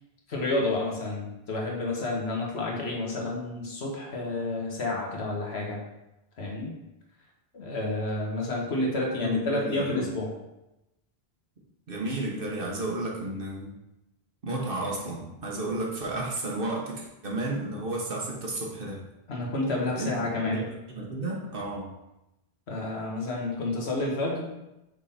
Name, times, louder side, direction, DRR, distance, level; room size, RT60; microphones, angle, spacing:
voice 1, 0.3-5.8 6.4-6.7 7.5-10.3 19.3-20.6 22.7-24.5, left 2 dB, 90° left, -2 dB, 1.6 m, -30 dB
voice 2, 9.2-10.1 11.9-13.7 14.4-19.0 20.0-20.1 20.4-21.9, right 2 dB, 60° right, -2 dB, 1.4 m, -32 dB
6.2 x 3.7 x 4.2 m, 0.93 s
omnidirectional pair, 1.1 m